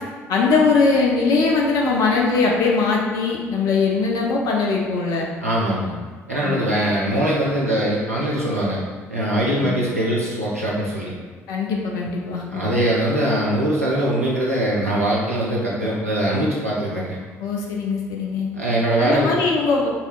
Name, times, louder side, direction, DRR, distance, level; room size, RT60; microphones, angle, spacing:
voice 1, 0.3-5.3 6.4-6.6 9.6-9.8 11.5-12.7 17.4-18.5 19.0-19.9, left 4 dB, 55° left, -1 dB, 0.4 m, -21 dB
voice 2, 5.4-5.9 6.3-8.8 9.1-11.1 12.5-17.2 18.5-19.4, right 1 dB, 90° right, -6 dB, 0.5 m, -22 dB
4.0 x 2.7 x 2.4 m, 1.5 s
figure-of-eight pair, 45°, 8 cm